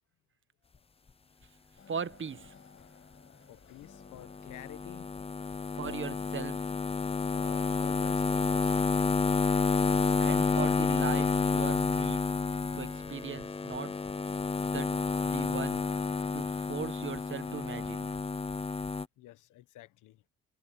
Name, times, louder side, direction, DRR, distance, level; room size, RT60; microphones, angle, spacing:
sound 1, 1.8-18.0, left 6 dB, 40° left, 7.0 m, -59 dB
voice 1, 1.9-2.5 5.8-6.7 10.2-12.2 12.8-14.0 14.6-15.8 16.3-18.1, right 7 dB, 40° right, 1.4 m, -39 dB
voice 2, 3.5-5.1 7.3-8.9 19.2-20.3, left 14 dB, 90° left, 1.4 m, -50 dB
sound 2, 4.2-19.1, left 4 dB, 20° left, 0.7 m, -30 dB
cardioid pair, 90°, 30 cm